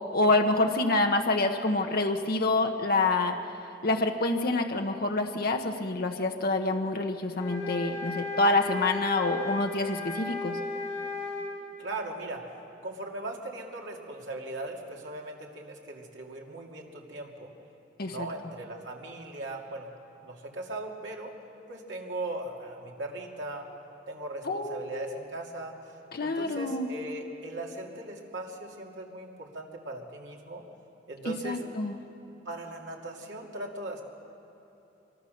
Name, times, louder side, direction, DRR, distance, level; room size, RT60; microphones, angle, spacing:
voice 1, 0.1-3.4 3.8-10.6 18.0-18.3 24.5-25.1 26.1-26.9 31.2-31.9, left 2 dB, 55° left, 4 dB, 1.0 m, -27 dB
sound 1, 7.3-11.5, left 3 dB, 20° left, 6.9 m, -35 dB
voice 2, 11.8-12.5 12.8-17.5 18.1-19.9 20.2-21.3 21.7-23.7 24.1-30.6 31.1-31.6 32.4-34.0, right 2 dB, 75° right, 0 dB, 2.7 m, -39 dB
24.5 x 22.0 x 6.5 m, 3.0 s
head